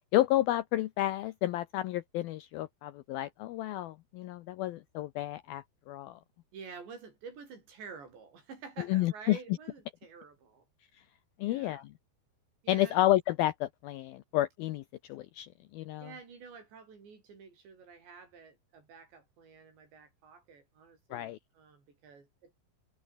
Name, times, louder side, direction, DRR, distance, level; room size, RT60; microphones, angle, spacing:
voice 1, 0.1-6.2 8.9-9.4 11.4-11.9 12.7-16.1 21.1-21.4, left 15 dB, 90° left, 2.1 m, -31 dB
voice 2, 6.5-10.7 11.4-11.9 12.6-13.0 16.0-22.6, right 5 dB, 70° right, 8.5 m, -50 dB
omnidirectional pair, 5.3 m